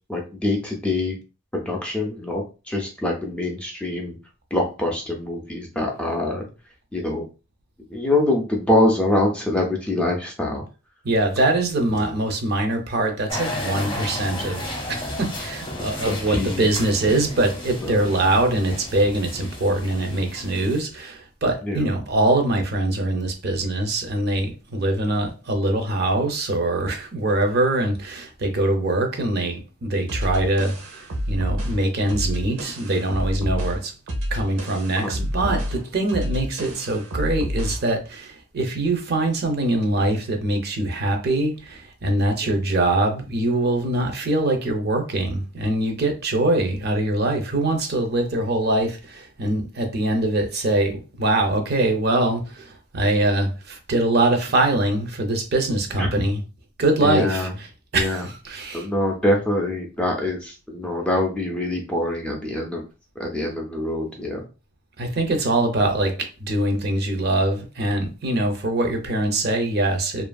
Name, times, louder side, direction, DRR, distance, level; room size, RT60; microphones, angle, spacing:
voice 1, 0.1-1.2 1.5-4.2 4.5-6.5 6.9-7.3 7.9-10.6 11.9-12.1 15.7-16.7 17.8-18.1 21.6-21.9 33.4-33.6 35.0-35.6 42.4-42.5 56.0-56.1 57.0-57.5 57.9-58.3 58.7-62.8 63.2-64.4, left 1 dB, 5° left, 0.3 m, -25 dB
voice 2, 11.0-33.9 34.3-56.4 56.8-57.7 57.9-58.9 65.0-70.2, right 2 dB, 45° right, 0.5 m, -23 dB
sound 1, 13.3-20.8, left 1 dB, 25° left, 0.7 m, -33 dB
sound 2, 30.1-37.9, equal, 80° right, 0.7 m, -28 dB
2.7 x 2.5 x 2.2 m
head